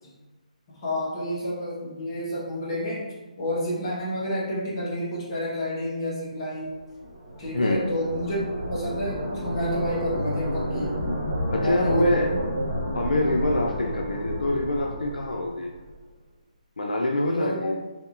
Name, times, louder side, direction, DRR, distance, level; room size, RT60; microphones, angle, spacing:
voice 1, 0.7-3.0 3.4-6.8 7.4-8.4 8.7-11.1 11.6-12.3 17.2-17.7, equal, 35° left, -7 dB, 1.2 m, -29 dB
sound 1, 6.7-16.0, equal, 5° left, 1.1 m, -31 dB
voice 2, 7.5-7.9 11.5-12.3 12.9-15.7 16.8-17.8, left 2 dB, 85° left, 1 dB, 0.4 m, -25 dB
3.4 x 2.7 x 2.5 m, 1.2 s
hypercardioid pair, 155°, 4 cm